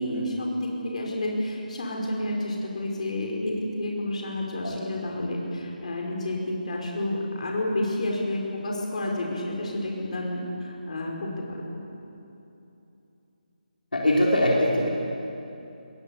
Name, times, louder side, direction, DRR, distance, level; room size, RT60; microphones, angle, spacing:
voice 1, 0.0-11.8, left 1 dB, 50° left, -1 dB, 5.0 m, -30 dB
voice 2, 13.9-14.9, left 1 dB, 70° left, -3 dB, 4.2 m, -22 dB
22.0 x 21.0 x 7.2 m, 2.9 s
figure-of-eight pair, 155°, 5 cm